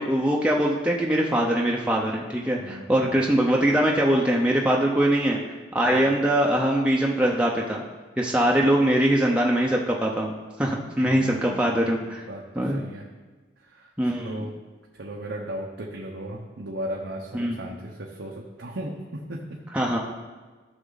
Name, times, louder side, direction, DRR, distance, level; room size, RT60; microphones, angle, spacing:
voice 1, 0.0-5.4 5.7-7.8 8.2-10.3 10.6-12.3 12.5-12.8 14.0-14.5 17.3-17.6 19.7-20.0, right 1 dB, 5° right, -2 dB, 0.7 m, -22 dB
voice 2, 2.6-3.2 5.9-6.1 11.0-11.7 12.0-12.4 12.7-13.1 13.7-14.5 14.9-19.4, right 1 dB, 85° right, -1 dB, 1.0 m, -36 dB
15.0 x 6.3 x 4.0 m, 1.3 s
head